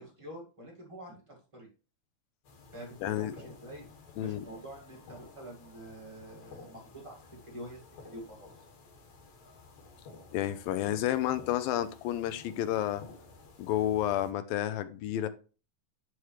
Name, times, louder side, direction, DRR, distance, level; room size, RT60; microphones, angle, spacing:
voice 1, 0.0-1.7 2.7-3.8 4.1-7.2 7.4-8.5, right 1 dB, 15° right, 0.9 m, -47 dB
sound 1, 2.4-14.3, left 4 dB, 55° left, 2.9 m, -53 dB
voice 2, 3.0-3.3 4.2-4.5 10.3-13.0 13.6-15.3, left 12 dB, 85° left, 2.4 m, -30 dB
10.5 x 4.8 x 3.2 m
omnidirectional pair, 4.1 m